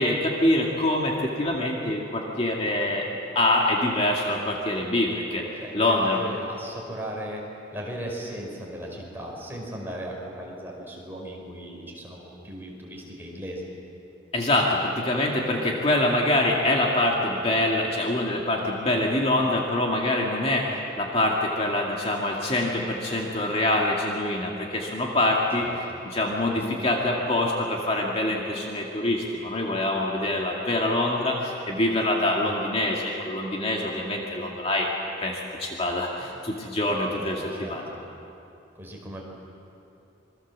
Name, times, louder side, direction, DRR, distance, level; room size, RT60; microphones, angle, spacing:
voice 1, 0.0-3.0 3.3-5.5 5.7-6.2 14.3-25.7 26.1-34.9 35.2-37.8, left 1 dB, 30° left, -1 dB, 2.3 m, -25 dB
voice 2, 2.6-2.9 5.6-7.4 7.7-13.7 25.6-26.3 26.5-26.9 32.4-32.9 36.8-38.0 38.8-39.2, equal, 10° right, -2 dB, 5.1 m, -38 dB
27.0 x 22.5 x 7.6 m, 2.8 s
head